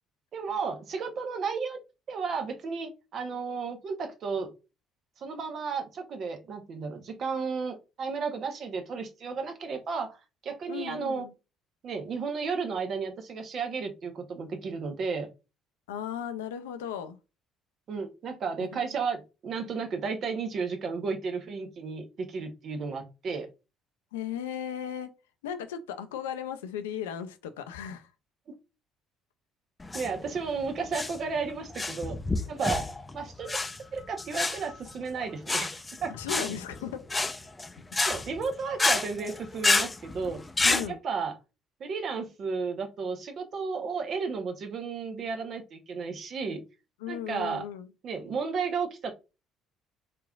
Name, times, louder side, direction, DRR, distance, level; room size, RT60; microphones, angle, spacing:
voice 1, 0.3-1.8 2.1-4.5 5.2-11.3 11.8-15.3 17.9-23.5 29.9-32.2 32.5-32.8 33.1-33.6 33.9-36.1 38.1-40.4 40.9-41.3 41.8-46.6 47.1-47.6 48.0-49.1, right 5 dB, 50° right, 0.9 m, -33 dB
voice 2, 10.7-11.3 15.9-17.2 18.7-19.0 24.1-25.1 25.4-28.1 36.1-37.0 40.6-41.0 47.0-47.9, left 8 dB, 80° left, 0.4 m, -36 dB
sound 1, 29.8-40.9, left 3 dB, 20° left, 0.5 m, -29 dB
3.7 x 3.1 x 2.3 m
hypercardioid pair, 55°, 0 cm